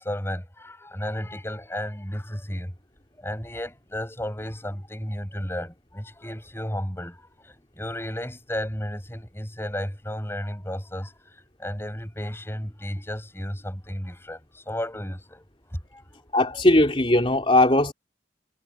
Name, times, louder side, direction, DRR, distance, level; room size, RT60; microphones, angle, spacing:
voice 1, 0.0-2.7 3.2-11.1 11.6-16.2, left 1 dB, 15° left, 5.4 m, -33 dB
voice 2, 16.3-17.9, left 1 dB, 30° left, 3.7 m, -19 dB
head